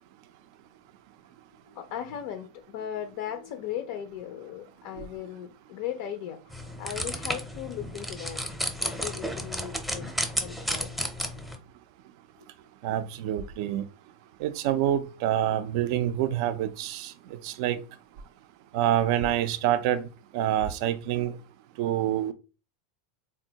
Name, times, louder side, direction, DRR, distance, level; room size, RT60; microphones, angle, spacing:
voice 1, 1.7-6.5 6.8-8.4 8.8-10.1 10.3-11.1, left 10 dB, 60° left, 0.4 m, -37 dB
sound 1, 6.5-11.6, equal, ahead, 0.6 m, -32 dB
voice 2, 12.8-13.8 14.4-17.8 18.7-20.1 20.3-21.3 21.8-22.3, right 11 dB, 60° right, 0.3 m, -27 dB
3.7 x 2.1 x 2.7 m
hypercardioid pair, 105°, 3 cm